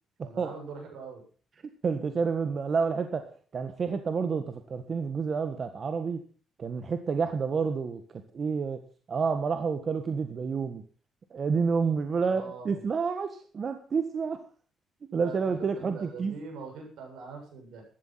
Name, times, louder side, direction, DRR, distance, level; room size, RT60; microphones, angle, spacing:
voice 1, 0.2-1.2 12.2-12.9 15.1-17.8, right 4 dB, 80° right, 3 dB, 7.6 m, -43 dB
voice 2, 1.6-3.3 3.5-6.2 6.6-8.8 9.1-10.8 11.3-14.4 15.1-16.3, right 5 dB, 45° right, 8 dB, 1.6 m, -29 dB
14.5 x 12.5 x 5.8 m, 0.40 s
cardioid pair, 90°, 0 cm